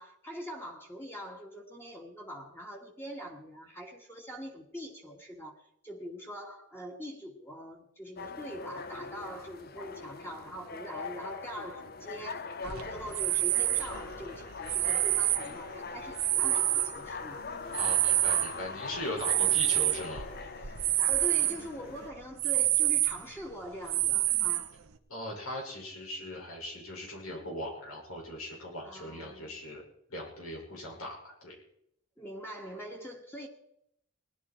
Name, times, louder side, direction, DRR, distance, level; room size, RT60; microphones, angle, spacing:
voice 1, 0.0-17.4 19.3-19.6 20.6-20.7 21.1-24.7 28.8-29.5 32.2-33.5, equal, 10° left, 1.7 m, -43 dB
sound 1, 8.2-22.1, left 4 dB, 45° left, 0.7 m, -41 dB
sound 2, 12.6-17.3 17.7-21.6 22.0-22.1 22.4-23.4 23.9-24.9, right 15 dB, 85° right, 1.1 m, -28 dB
voice 2, 17.7-20.2 25.1-29.8 30.1-31.5, left 1 dB, 90° left, 5.9 m, -39 dB
19.5 x 11.5 x 4.5 m
head